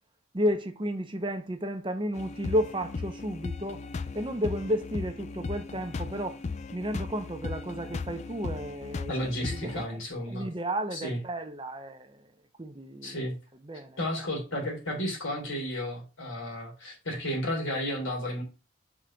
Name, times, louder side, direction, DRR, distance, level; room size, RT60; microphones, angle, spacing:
voice 1, 0.3-3.9 4.1-6.4 6.7-10.0 10.3-12.3 12.6-13.2 13.6-14.0, equal, 25° right, 0.8 m, -32 dB
sound 1, 2.1-9.9, left 4 dB, 35° left, 0.3 m, -37 dB
voice 2, 9.1-10.5 10.9-11.2 13.0-13.4 14.0-18.4, equal, 80° left, 3.4 m, -33 dB
5.9 x 4.0 x 6.3 m
head